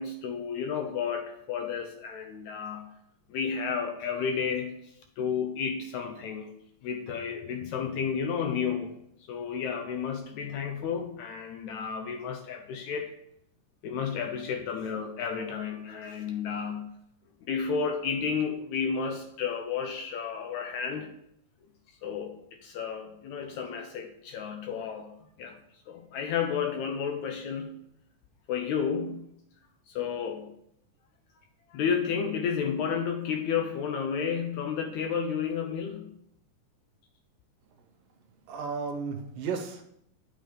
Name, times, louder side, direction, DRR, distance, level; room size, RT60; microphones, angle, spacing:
voice 1, 0.0-2.8 3.3-6.6 6.8-9.0 9.3-13.1 13.8-16.8 17.5-21.1 22.0-22.3 22.6-25.1 25.4-25.6 25.9-27.8 28.5-29.3 29.9-30.5 31.7-36.1, left 6 dB, 75° left, 5 dB, 1.8 m, -32 dB
voice 2, 38.5-39.8, right 5 dB, 85° right, 4 dB, 2.6 m, -33 dB
10.5 x 6.3 x 3.2 m, 0.75 s
omnidirectional pair, 3.8 m